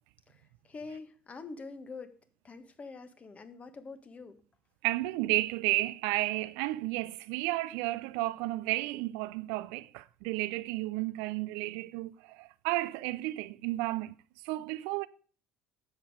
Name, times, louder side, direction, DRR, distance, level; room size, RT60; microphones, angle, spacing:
voice 1, 0.3-2.2 2.4-4.4, left 4 dB, 30° left, 1.4 m, -45 dB
voice 2, 4.8-14.1 14.4-15.1, right 19 dB, 65° right, 0.4 m, -32 dB
10.5 x 7.2 x 4.8 m
figure-of-eight pair, 60°, 5 cm